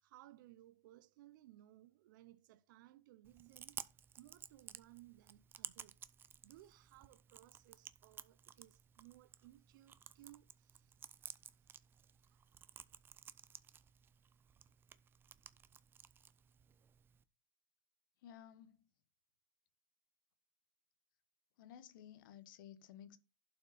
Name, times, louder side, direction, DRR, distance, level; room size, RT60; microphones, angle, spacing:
voice 1, 0.0-3.8 4.2-6.0 6.4-11.8 12.3-12.7 13.1-13.2, right 15 dB, 60° right, 0.7 m, -62 dB
Chewing mastication, 3.2-17.2, right 8 dB, 20° right, 0.6 m, -55 dB
voice 2, 18.2-18.8 21.6-23.2, left 10 dB, 60° left, 1.2 m, -56 dB
11.5 x 5.7 x 4.1 m
hypercardioid pair, 135°, 12 cm